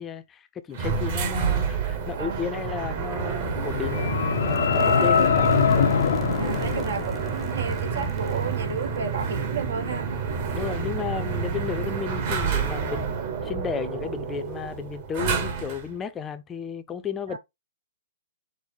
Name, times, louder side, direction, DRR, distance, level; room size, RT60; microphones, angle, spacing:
voice 1, 0.0-4.2 4.7-5.5 10.5-13.2 13.4-17.4, left 7 dB, 15° left, 0.5 m, -33 dB
sound 1, 0.7-15.9, right 6 dB, 45° right, 1.3 m, -29 dB
voice 2, 2.2-2.5 4.8-5.5 6.4-10.1 17.3-17.4, right 6 dB, 75° right, 1.0 m, -33 dB
sound 2, 3.4-7.7, left 7 dB, 70° left, 0.5 m, -23 dB
sound 3, 4.3-10.2, right 3 dB, 15° right, 0.8 m, -36 dB
5.3 x 2.1 x 4.6 m
hypercardioid pair, 140°, 0 cm